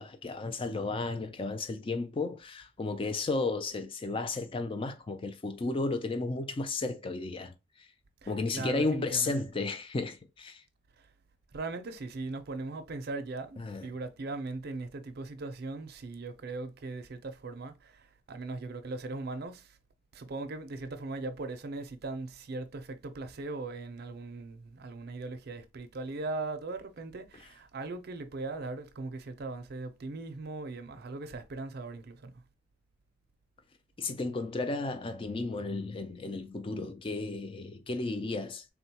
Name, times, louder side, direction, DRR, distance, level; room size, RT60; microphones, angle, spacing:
voice 1, 0.0-7.9 8.3-10.6 13.6-13.9 34.0-38.7, left 3 dB, 25° left, 0.4 m, -33 dB
voice 2, 8.2-9.4 11.0-11.1 11.5-19.8 20.1-32.4, right 3 dB, 50° right, 0.5 m, -39 dB
3.6 x 2.2 x 2.8 m
head